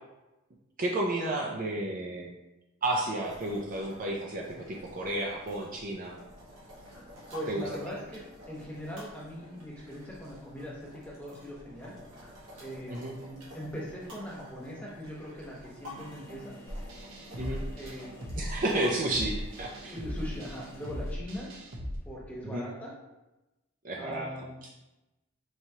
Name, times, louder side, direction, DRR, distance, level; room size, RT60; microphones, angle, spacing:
voice 1, 0.8-2.3 2.8-6.2 7.5-7.6 12.9-13.1 17.4-17.6 18.3-20.0 22.4-22.6 23.8-24.3, right 1 dB, 35° right, -1 dB, 0.4 m, -32 dB
sound 1, 3.2-20.9, left 1 dB, 80° right, 1.3 m, -50 dB
voice 2, 7.3-12.0 12.6-16.5 17.7-18.1 19.9-21.5 22.0-22.9 24.0-24.6, equal, 5° left, -5 dB, 0.9 m, -41 dB
sound 2, 15.9-21.1, right 1 dB, 60° left, 0.6 m, -53 dB
sound 3, 16.7-22.0, equal, 60° right, 0.8 m, -38 dB
4.6 x 2.9 x 2.8 m, 1.0 s
head